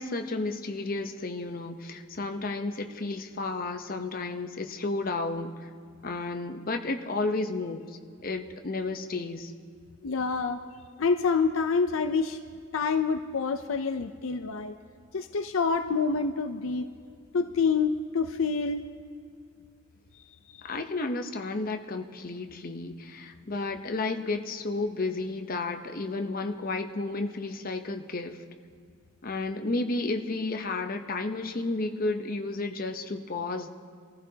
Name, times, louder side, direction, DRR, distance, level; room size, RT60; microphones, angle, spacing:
voice 1, 0.0-5.7 6.0-9.5 20.6-28.4 29.2-33.7, left 3 dB, 45° left, 5 dB, 0.8 m, -32 dB
voice 2, 10.0-10.6 11.0-12.4 12.7-14.8 15.1-16.9 17.3-18.9 20.5-20.7, left 5 dB, 70° left, 8 dB, 0.6 m, -27 dB
24.0 x 15.0 x 2.8 m, 2.2 s
head